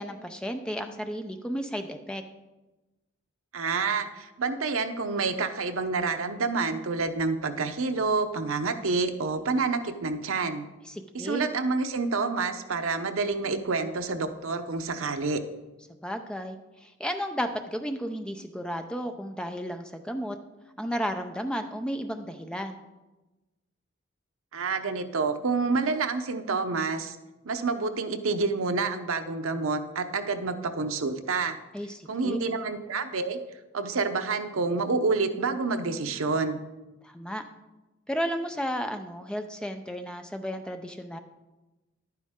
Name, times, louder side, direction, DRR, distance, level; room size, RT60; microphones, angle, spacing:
voice 1, 0.0-2.2 10.9-11.5 15.9-20.4 20.8-22.8 31.7-32.4 37.0-37.4 38.1-41.2, equal, 5° left, 6 dB, 0.5 m, -33 dB
voice 2, 3.5-10.7 11.1-15.4 24.5-27.2 27.4-31.6 32.1-33.4 33.7-36.6, right 4 dB, 85° right, 8 dB, 0.8 m, -28 dB
11.0 x 9.4 x 3.7 m, 1.1 s
head